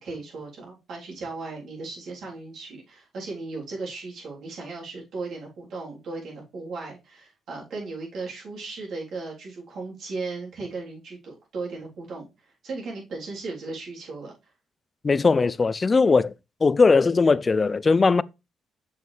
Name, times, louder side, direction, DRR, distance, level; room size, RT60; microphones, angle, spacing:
voice 1, 0.0-14.3, right 3 dB, 65° right, 3.7 m, -36 dB
voice 2, 15.0-16.3 16.6-18.2, left 4 dB, 30° left, 0.4 m, -19 dB
6.9 x 6.4 x 3.3 m
cardioid pair, 90°, 0 cm